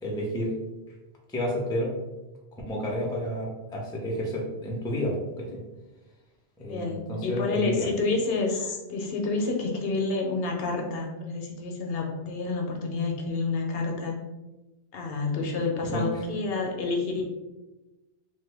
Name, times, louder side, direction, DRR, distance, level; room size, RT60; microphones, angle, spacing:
voice 1, 0.0-0.5 1.3-1.9 2.7-5.6 6.6-7.9 15.8-16.0, equal, 5° left, -2 dB, 0.4 m, -30 dB
voice 2, 6.7-14.2 14.9-17.2, left 3 dB, 70° left, 1 dB, 0.8 m, -29 dB
2.9 x 2.2 x 3.3 m, 1.1 s
omnidirectional pair, 1.1 m